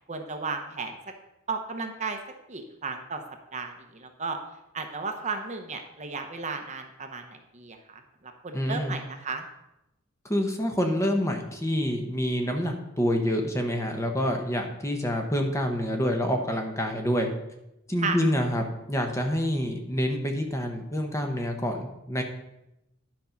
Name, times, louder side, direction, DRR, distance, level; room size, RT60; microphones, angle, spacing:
voice 1, 0.1-0.9 1.5-2.2 2.5-3.2 3.5-4.4 4.7-7.2 7.5-7.8 8.4-9.4 18.0-18.2, right 4 dB, 35° right, 5 dB, 0.8 m, -33 dB
voice 2, 8.5-9.0 10.2-17.3 17.9-22.2, equal, 15° left, 3 dB, 0.9 m, -27 dB
10.5 x 5.3 x 5.8 m, 0.90 s
head